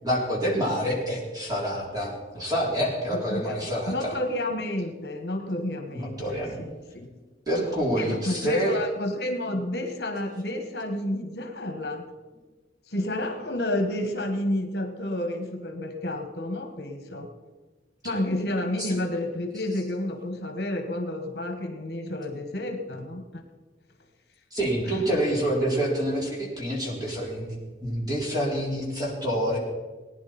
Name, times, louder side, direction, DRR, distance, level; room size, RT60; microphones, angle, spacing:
voice 1, 0.0-4.1 5.9-6.6 7.5-8.8 18.8-19.0 24.5-29.6, equal, 20° right, -3 dB, 3.5 m, -27 dB
voice 2, 3.1-7.1 8.0-12.0 12.9-17.3 18.0-23.4 24.8-25.1, left 1 dB, 60° left, 5 dB, 1.7 m, -30 dB
19.5 x 10.0 x 4.4 m, 1.3 s
head